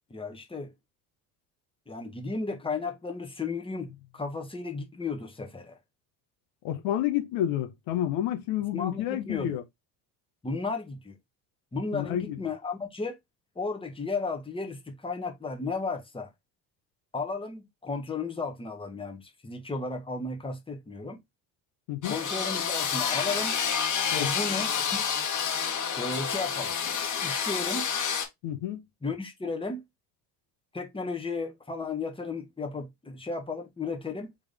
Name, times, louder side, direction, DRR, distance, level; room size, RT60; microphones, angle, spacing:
voice 1, 0.1-0.7 1.9-5.8 8.7-9.5 10.4-11.1 11.7-13.2 13.5-16.3 17.1-21.2 22.1-23.5 24.1-25.2 26.0-26.7 27.2-27.9 29.0-29.8 30.7-34.3, left 3 dB, 10° left, 1.4 m, -34 dB
voice 2, 6.6-9.6 11.9-12.4 21.9-22.2 24.1-24.3 28.4-28.8, left 12 dB, 65° left, 1.2 m, -29 dB
sound 1, 22.0-28.3, left 7 dB, 40° left, 1.8 m, -29 dB
3.8 x 3.5 x 3.5 m
hypercardioid pair, 70°, 47 cm